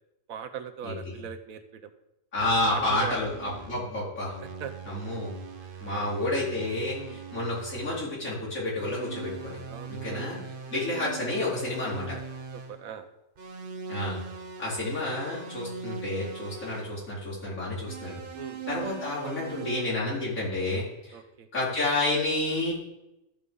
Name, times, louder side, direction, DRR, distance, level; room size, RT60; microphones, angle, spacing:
voice 1, 0.3-1.9 2.6-3.4 4.6-4.7 5.6-5.9 6.9-7.2 9.7-10.3 12.5-13.1 18.3-18.6 21.1-21.5, right 7 dB, 85° right, 8 dB, 1.3 m, -40 dB
voice 2, 0.8-1.2 2.3-4.4 4.9-5.3 5.8-9.6 9.9-10.4 10.7-12.2 13.9-14.2 14.6-18.2 18.7-21.2 21.5-22.7, left 2 dB, 80° left, -8 dB, 4.7 m, -30 dB
sound 1, 2.4-3.9 4.3-8.1 8.8-12.8 13.4-17.0 17.8-19.8, right 5 dB, 45° right, 1.0 m, -41 dB
14.0 x 5.0 x 5.4 m, 0.91 s
omnidirectional pair, 1.4 m